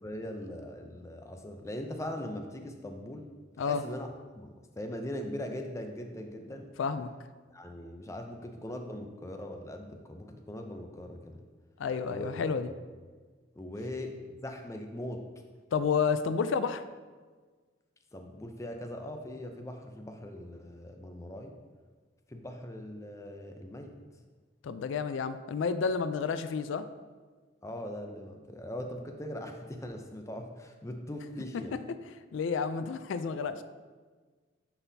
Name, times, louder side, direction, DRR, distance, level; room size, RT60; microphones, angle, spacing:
voice 1, 0.0-3.3 3.6-4.1 4.4-6.7 7.5-11.4 12.1-12.3 13.6-15.3 16.4-16.5 18.1-21.6 22.3-23.9 27.6-31.8, left 1 dB, 15° left, 4 dB, 0.4 m, -40 dB
voice 2, 6.8-7.1 11.8-12.7 15.7-16.8 24.6-26.8 32.3-33.6, left 5 dB, 85° left, 11 dB, 0.3 m, -30 dB
9.6 x 4.0 x 2.7 m, 1.4 s
head